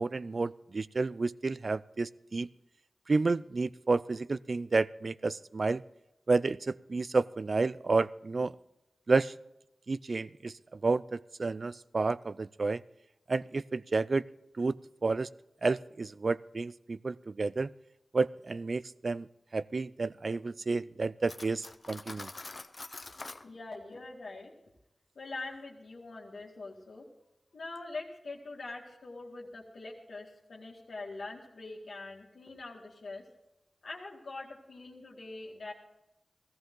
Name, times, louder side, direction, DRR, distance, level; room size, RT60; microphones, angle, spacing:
voice 1, 0.0-2.5 3.1-5.8 6.3-8.5 9.1-9.3 9.9-12.8 13.3-14.2 14.6-14.8 15.0-15.3 15.6-17.7 18.1-19.3 19.5-22.3, right 3 dB, 60° right, 19 dB, 0.4 m, -30 dB
Cutlery silverware, 21.3-23.4, left 2 dB, 45° left, 0.7 m, -44 dB
voice 2, 23.4-24.5 25.2-27.1 27.5-33.2 33.8-35.7, left 3 dB, 80° left, -2 dB, 2.0 m, -43 dB
15.5 x 14.5 x 3.8 m, 0.88 s
cardioid pair, 50°, 0 cm